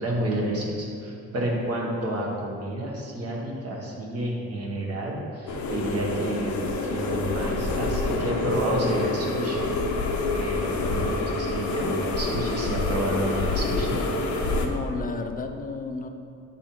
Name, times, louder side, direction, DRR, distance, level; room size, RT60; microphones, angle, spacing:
voice 1, 0.0-9.7 10.2-14.3, right 1 dB, 50° right, -2 dB, 1.3 m, -30 dB
sound 1, 5.5-14.7, left 2 dB, 70° left, 0.8 m, -27 dB
voice 2, 14.6-16.1, left 4 dB, 30° left, 5 dB, 0.5 m, -32 dB
6.8 x 4.0 x 4.4 m, 2.5 s
cardioid pair, 90°, 30 cm